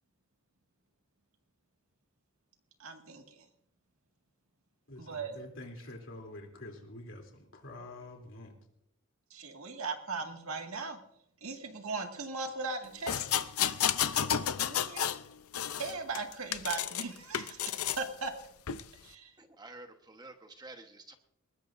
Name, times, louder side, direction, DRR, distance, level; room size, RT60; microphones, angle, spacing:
voice 1, 2.8-3.5 5.0-5.4 9.3-11.0 11.4-13.2 14.6-15.1 15.8-18.3 18.9-19.4, right 4 dB, 75° right, 2.0 m, -38 dB
voice 2, 4.9-8.5, left 1 dB, 60° left, 3.2 m, -47 dB
sound 1, 13.1-15.2 15.5-17.0 17.3-18.0 18.7-18.8, left 9 dB, 85° left, 0.7 m, -31 dB
voice 3, 19.4-21.1, right 2 dB, 20° right, 1.2 m, -50 dB
21.0 x 20.0 x 2.6 m
head